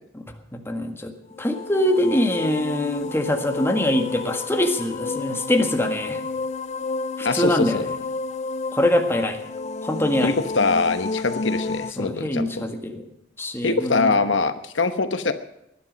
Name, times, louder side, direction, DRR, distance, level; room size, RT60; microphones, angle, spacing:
voice 1, 0.5-6.2 7.2-7.8 8.7-9.4 9.8-10.3 12.0-13.0 13.4-14.2, left 1 dB, 15° left, 4 dB, 1.7 m, -23 dB
sound 1, 1.3-11.9, left 3 dB, 40° left, 0.4 m, -31 dB
voice 2, 7.2-7.8 10.2-12.6 13.6-15.3, left 4 dB, 80° left, 9 dB, 1.1 m, -23 dB
19.5 x 11.5 x 5.3 m, 0.86 s
head